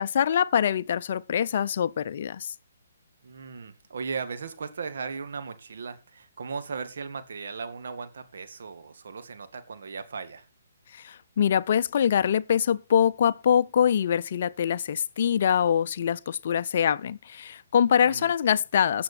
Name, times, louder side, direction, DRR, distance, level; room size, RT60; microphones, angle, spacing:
voice 1, 0.0-2.5 10.9-19.0, left 8 dB, 50° left, 0.5 m, -24 dB
voice 2, 3.2-10.5 18.0-18.3, right 5 dB, 65° right, 1.8 m, -37 dB
16.0 x 7.1 x 4.3 m
figure-of-eight pair, 135°, 0 cm